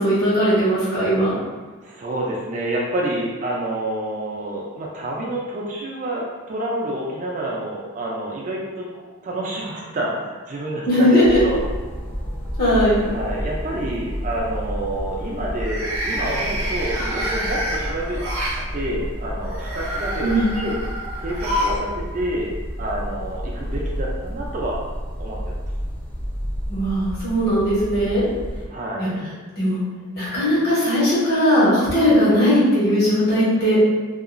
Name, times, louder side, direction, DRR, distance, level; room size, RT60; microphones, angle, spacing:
voice 1, 0.0-1.4 10.9-11.4 12.6-13.0 20.2-20.5 26.7-28.2 29.0-29.1 29.6-29.8 30.1-33.8, equal, 50° left, -10 dB, 1.4 m, -18 dB
voice 2, 1.8-8.8 9.2-11.6 13.1-18.2 18.7-20.8 21.2-22.5 22.8-24.8 25.2-25.6 28.7-29.3, right 1 dB, 35° right, -3 dB, 0.3 m, -28 dB
sound 1, 11.2-28.7, equal, 25° left, 0.5 m, -30 dB
sound 2, 12.0-12.6 13.0-13.4 15.5-18.6 19.4-21.9 22.1-22.2 23.3-23.4, equal, 80° right, 0.7 m, -28 dB
2.8 x 2.3 x 2.5 m, 1.4 s
head